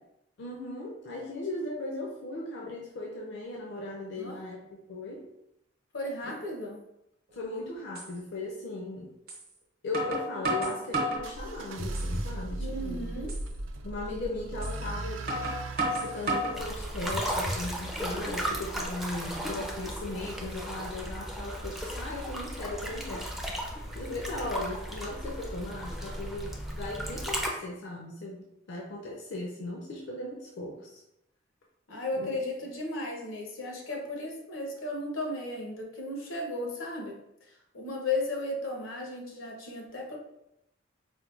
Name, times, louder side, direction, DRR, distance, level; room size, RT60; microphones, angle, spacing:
voice 1, 0.4-5.3 6.2-6.4 7.3-9.1 9.8-13.0 13.8-15.2 15.9-23.3 23.9-31.0 32.2-32.3, left 2 dB, 60° left, -1 dB, 0.5 m, -37 dB
voice 2, 5.9-6.8 12.6-13.3 31.9-37.1 37.7-40.2, left 2 dB, 90° left, 0 dB, 0.8 m, -35 dB
sound 1, 7.4-7.5 8.0-8.1 9.3-9.4 9.9-11.3 11.8-12.3 12.7-12.8 13.3-13.5 14.6-14.8 15.3-16.6 17.1-17.7, right 1 dB, 50° right, 0.8 m, -31 dB
sound 2, 11.2-18.1, right 1 dB, 80° right, 0.4 m, -38 dB
sound 3, 16.5-27.5, equal, ahead, 0.3 m, -35 dB
4.3 x 2.1 x 2.4 m, 0.82 s
head